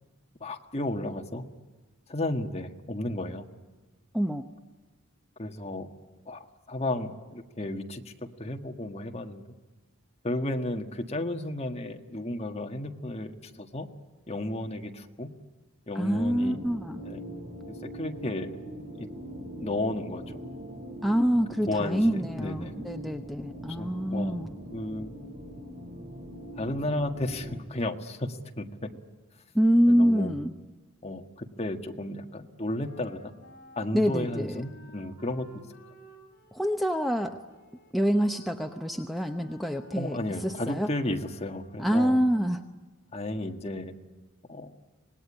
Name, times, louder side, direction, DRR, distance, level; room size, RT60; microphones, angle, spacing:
voice 1, 0.4-1.4 2.1-3.5 5.4-5.9 6.2-8.1 8.4-9.4 10.2-13.9 14.3-15.3 15.9-16.6 17.0-17.2 17.7-18.5 19.0-19.1 19.6-20.4 21.7-22.7 23.7-24.4 24.7-25.1 26.6-28.9 29.9-30.3 31.0-33.3 33.7-35.6 39.9-42.2 43.1-43.9 44.5-44.7, left 1 dB, 30° left, 5 dB, 1.6 m, -33 dB
voice 2, 4.1-4.5 15.9-17.0 21.0-24.5 29.5-30.5 33.9-34.6 36.5-37.4 37.9-40.2 40.4-40.9 41.8-42.6, equal, ahead, 4 dB, 0.8 m, -26 dB
sound 1, 16.1-27.6, equal, 40° right, 2.6 m, -42 dB
Wind instrument woodwind instrument, 32.8-41.8, left 1 dB, 50° left, 6.7 m, -53 dB
26.0 x 20.0 x 9.9 m, 1.3 s
head